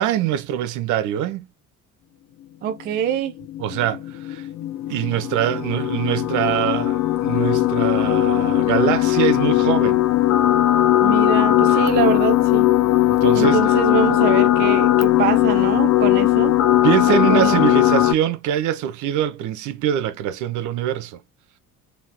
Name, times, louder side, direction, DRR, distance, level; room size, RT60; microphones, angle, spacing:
voice 1, 0.0-1.5 3.6-4.5 4.9-10.0 11.7-11.8 13.0-13.6 16.8-21.2, right 11 dB, 40° right, 0.7 m, -23 dB
voice 2, 2.6-3.3 11.0-12.6 13.3-16.6 17.1-17.7, right 9 dB, 25° right, 0.3 m, -24 dB
sound 1, 3.2-18.1, left 14 dB, 40° left, 0.6 m, -18 dB
3.7 x 3.5 x 3.0 m
figure-of-eight pair, 60°, 45 cm